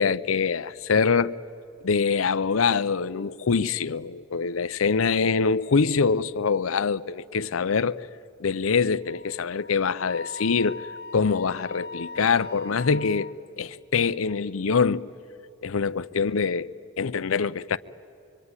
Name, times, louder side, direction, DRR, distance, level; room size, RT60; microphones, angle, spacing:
voice 1, 0.0-1.4 1.8-8.1 8.4-10.9 11.1-13.3 13.6-15.0 15.6-16.7 17.0-17.8, left 5 dB, 75° left, 0.6 m, -24 dB
Wind instrument woodwind instrument, 9.0-13.4, left 3 dB, 50° left, 0.9 m, -40 dB
25.0 x 23.5 x 9.7 m
head